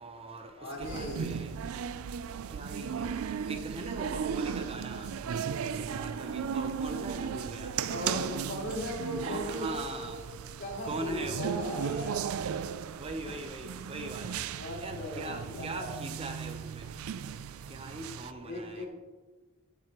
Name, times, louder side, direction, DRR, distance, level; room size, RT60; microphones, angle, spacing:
voice 1, 0.0-0.4 0.8-1.5 2.5-3.0 3.5-5.1 5.6-7.7 9.2-10.1 10.8-11.5 13.0-14.3 14.8-16.6 17.7-18.9, right 2 dB, 25° right, 6 dB, 0.8 m, -40 dB
voice 2, 0.6-1.5 7.9-10.2 10.6-12.3 13.3-13.4 14.5-16.0 18.4-18.9, equal, 55° left, -2 dB, 2.6 m, -38 dB
sound 1, 0.8-18.3, right 7 dB, 70° right, 0.4 m, -36 dB
11.0 x 9.5 x 3.0 m, 1.3 s
head